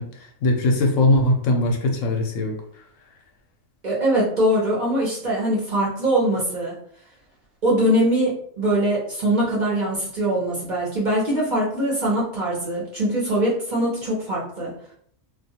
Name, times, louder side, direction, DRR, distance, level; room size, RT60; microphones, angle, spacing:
voice 1, 0.0-2.6, left 2 dB, 80° left, 2 dB, 0.9 m, -20 dB
voice 2, 3.8-6.7 7.6-14.7, right 1 dB, 45° right, -5 dB, 0.7 m, -22 dB
2.3 x 2.2 x 2.8 m, 0.63 s
omnidirectional pair, 1.4 m